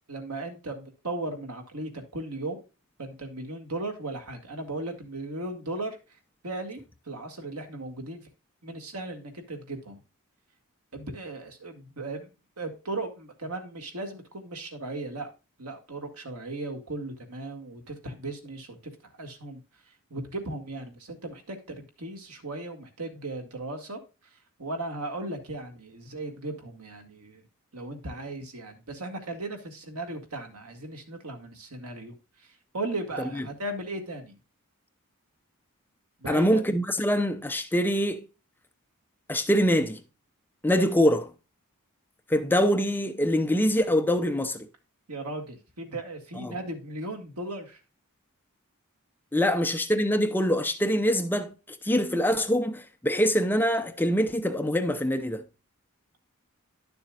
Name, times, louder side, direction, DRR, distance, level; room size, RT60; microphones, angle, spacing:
voice 1, 0.1-2.6 3.0-6.0 6.4-6.8 7.1-8.2 8.6-10.0 10.9-12.3 12.6-15.3 15.6-18.8 19.2-19.6 20.1-24.0 24.6-27.4 27.7-32.2 32.7-34.4 36.2-36.6 45.1-47.8 49.5-49.6, right 2 dB, 80° right, 1.9 m, -36 dB
voice 2, 36.3-38.2 39.3-40.0 40.6-41.3 42.3-44.7 46.4-46.6 49.3-51.5 51.8-55.4, equal, 10° left, 0.6 m, -24 dB
11.0 x 6.9 x 2.4 m
head